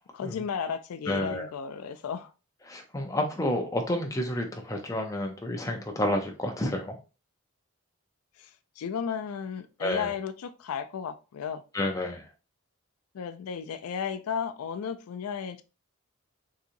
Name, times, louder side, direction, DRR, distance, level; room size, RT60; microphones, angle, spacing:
voice 1, 0.1-2.3 8.4-11.6 13.1-15.6, left 7 dB, 90° left, 0.4 m, -34 dB
voice 2, 1.1-1.5 2.7-7.0 9.8-10.1 11.7-12.2, left 1 dB, 15° left, 0.5 m, -30 dB
3.8 x 2.8 x 2.6 m
head